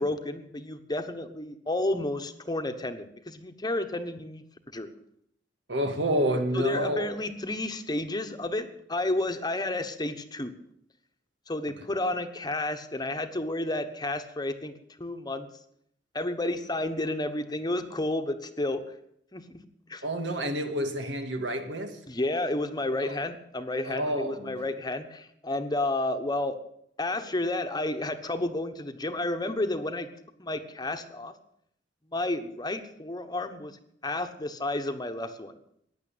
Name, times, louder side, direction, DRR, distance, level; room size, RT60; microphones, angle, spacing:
voice 1, 0.0-4.4 4.7-4.9 6.5-10.5 11.5-14.7 15.0-15.5 16.1-18.8 19.3-19.5 19.9-20.0 22.1-26.6 27.0-30.1 30.4-31.3 32.1-33.8 34.0-35.5, left 2 dB, 25° left, 8 dB, 1.1 m, -31 dB
voice 2, 5.7-7.2 20.0-22.0 23.0-23.2 23.8-24.6, equal, 85° right, 6 dB, 2.2 m, -29 dB
15.0 x 10.0 x 8.6 m, 0.72 s
head